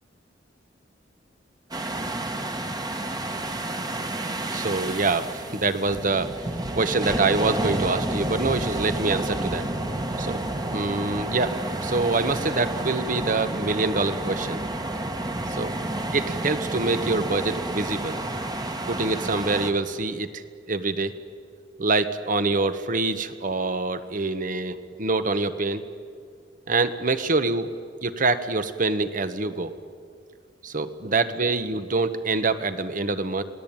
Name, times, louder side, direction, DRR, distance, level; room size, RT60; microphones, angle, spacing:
sound 1, 1.7-19.7, right 1 dB, 20° right, 1.5 m, -30 dB
voice 1, 4.5-6.3 6.7-9.7 10.2-10.4 10.7-11.5 11.8-14.6 15.5-15.7 16.1-18.2 18.9-21.1 21.8-25.8 26.7-27.7 28.0-29.7 30.6-33.4, right 3 dB, 50° right, 11 dB, 1.2 m, -25 dB
27.0 x 18.5 x 8.9 m, 2.2 s
head